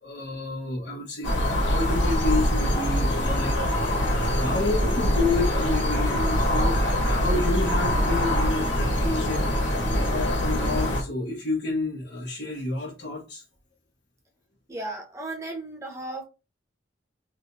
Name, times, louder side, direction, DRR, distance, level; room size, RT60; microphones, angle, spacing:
voice 1, 0.0-9.4 9.7-9.8 10.1-13.4, left 3 dB, 65° left, 1.2 m, -30 dB
sound 1, 1.2-11.0, equal, 90° left, 1.4 m, -24 dB
voice 2, 14.7-16.2, right 2 dB, 15° right, 0.8 m, -35 dB
3.4 x 3.3 x 2.6 m
head